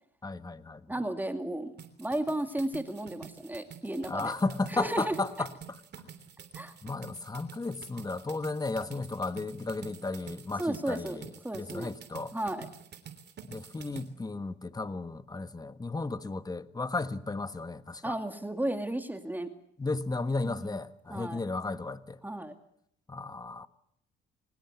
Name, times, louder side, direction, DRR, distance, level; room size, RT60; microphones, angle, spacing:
voice 1, 0.2-0.9 4.1-5.5 6.0-6.1 6.8-11.3 11.5-12.3 13.5-18.2 19.8-22.2 23.1-23.7, left 3 dB, 20° left, 1.4 m, -34 dB
voice 2, 0.9-1.7 2.0-4.3 4.7-5.2 6.5-6.7 10.6-11.2 11.4-11.9 12.3-12.7 18.0-19.5 20.4-20.8 21.1-21.4 22.2-22.5, right 1 dB, 10° right, 2.4 m, -33 dB
sound 1, 1.8-14.1, right 8 dB, 60° right, 3.3 m, -48 dB
23.5 x 20.0 x 8.2 m
cardioid pair, 90°, 20 cm